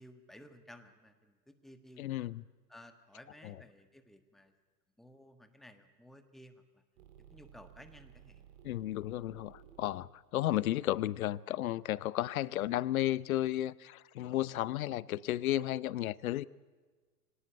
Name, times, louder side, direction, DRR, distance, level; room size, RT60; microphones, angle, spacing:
voice 1, 0.0-2.3 2.7-4.5 5.0-6.8 7.2-8.4, left 1 dB, ahead, 1.5 m, -56 dB
voice 2, 2.0-2.4 3.4-3.5 8.6-16.4, left 14 dB, 55° left, 0.8 m, -33 dB
sound 1, 7.0-12.1, right 9 dB, 50° right, 3.7 m, -58 dB
24.5 x 18.0 x 9.1 m
figure-of-eight pair, 105°, 50 cm